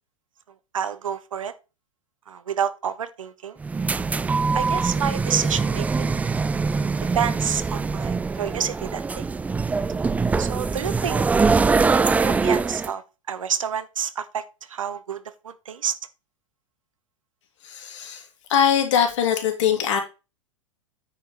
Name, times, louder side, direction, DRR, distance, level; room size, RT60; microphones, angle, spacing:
voice 1, 0.7-1.5 2.3-3.6 4.5-6.2 6.7-6.8 7.1-9.3 10.4-11.3 11.9-13.0 13.3-14.4 14.7-15.9, right 8 dB, 80° right, 1.0 m, -29 dB
sound 1, 3.6-12.9, right 4 dB, 10° right, 0.3 m, -23 dB
voice 2, 17.6-18.2 18.5-20.0, left 8 dB, 65° left, 2.7 m, -21 dB
9.3 x 5.0 x 4.2 m
hypercardioid pair, 95°, 17 cm